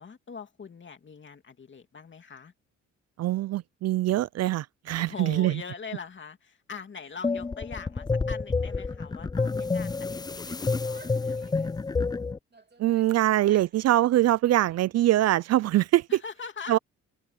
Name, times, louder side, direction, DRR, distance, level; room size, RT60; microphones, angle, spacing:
voice 1, 0.0-2.5 5.0-11.5 16.1-16.8, left 5 dB, 40° left, 2.6 m, -42 dB
voice 2, 3.2-5.6 12.8-16.0 16.7-16.8, right 14 dB, 55° right, 0.4 m, -23 dB
sound 1, 7.2-12.4, left 4 dB, 15° left, 0.4 m, -29 dB
Female speech woman speaking / Yell, 10.3-11.9 12.5-13.8 14.1-15.1, right 4 dB, 35° right, 3.5 m, -55 dB
open air
cardioid pair, 90°, 30 cm